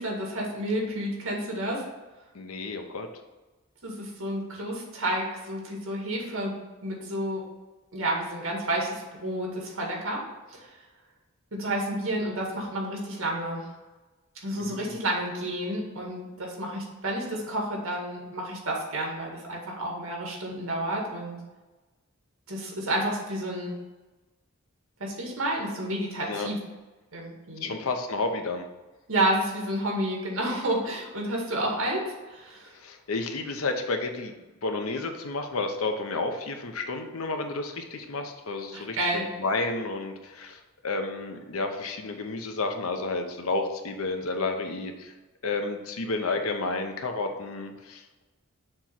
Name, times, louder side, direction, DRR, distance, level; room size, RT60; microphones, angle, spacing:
voice 1, 0.0-1.8 3.8-6.5 6.8-7.4 7.9-10.2 10.5-10.6 11.5-13.7 14.4-21.4 22.5-23.7 25.0-26.6 27.1-27.7 29.1-32.7 38.7-39.3, right 1 dB, 70° right, -1 dB, 1.9 m, -30 dB
voice 2, 2.3-3.1 14.6-15.0 26.3-26.5 27.6-28.7 32.7-39.0 39.4-45.1 45.4-48.2, left 3 dB, 80° left, 5 dB, 0.8 m, -31 dB
6.8 x 3.1 x 5.8 m, 1.2 s
head